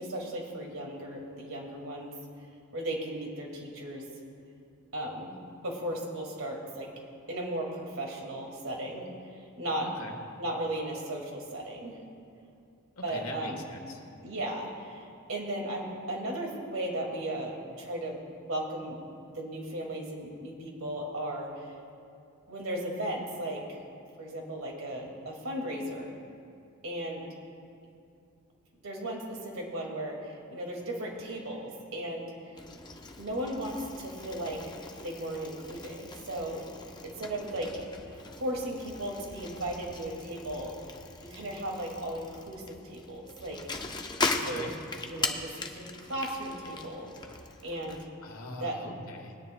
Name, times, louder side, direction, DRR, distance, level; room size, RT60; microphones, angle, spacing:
voice 1, 0.0-2.1 2.7-4.0 4.9-5.3 5.6-6.9 7.3-9.1 9.6-9.9 10.4-12.0 13.0-13.6 14.2-19.0 19.3-21.7 22.5-23.8 24.2-26.2 26.8-27.3 28.8-32.3 33.2-34.6 35.0-36.6 37.0-40.8 41.2-43.9 44.5-44.7 45.1-47.1 47.6-48.1 48.6-48.8, right 1 dB, 70° right, -1 dB, 2.2 m, -36 dB
voice 2, 13.0-14.0 44.3-44.7 48.2-49.3, left 2 dB, 80° left, 2 dB, 1.5 m, -42 dB
Bicycle, 32.5-48.0, left 3 dB, 20° left, 0.7 m, -39 dB
22.0 x 9.8 x 2.2 m, 2.5 s
head